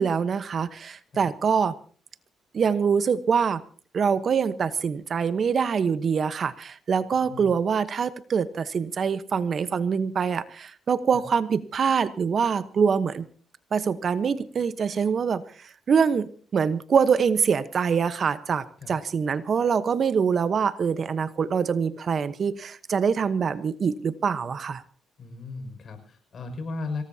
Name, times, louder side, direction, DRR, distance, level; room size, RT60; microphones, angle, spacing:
voice 1, 0.0-1.7 2.5-3.6 3.9-13.3 13.7-15.4 15.9-24.8, right 6 dB, 50° right, 13 dB, 1.1 m, -24 dB
voice 2, 7.1-7.5 18.8-19.0 25.2-27.0, left 3 dB, 50° left, 6 dB, 6.0 m, -36 dB
26.0 x 18.5 x 2.8 m, 0.41 s
cardioid pair, 90°, 0 cm